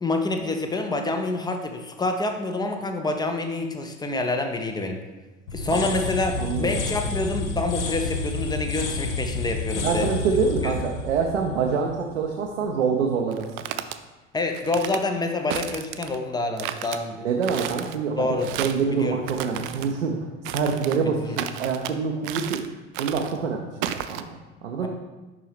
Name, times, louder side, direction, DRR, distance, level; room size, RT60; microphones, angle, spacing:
voice 1, 0.0-5.1 5.5-10.1 10.6-10.7 14.3-17.2 18.2-18.5 18.9-19.2 21.0-21.4 24.8-24.9, left 2 dB, 10° left, 5 dB, 0.6 m, -27 dB
sound 1, 5.5-12.3, left 3 dB, 65° left, 1.0 m, -30 dB
voice 2, 6.4-6.8 9.8-13.5 17.2-20.2 20.5-22.6 23.0-24.9, right 5 dB, 70° right, 0 dB, 0.7 m, -26 dB
sound 2, 13.3-14.0 14.5-15.0 15.5-16.2 16.6-17.0 17.4-18.0 18.4-18.9 19.2-19.9 20.5-21.0 21.4-21.9 22.2-22.7 22.9-23.4 23.8-24.2, right 11 dB, 45° right, 0.4 m, -33 dB
6.8 x 5.5 x 3.4 m, 1.1 s
figure-of-eight pair, 70°, 37 cm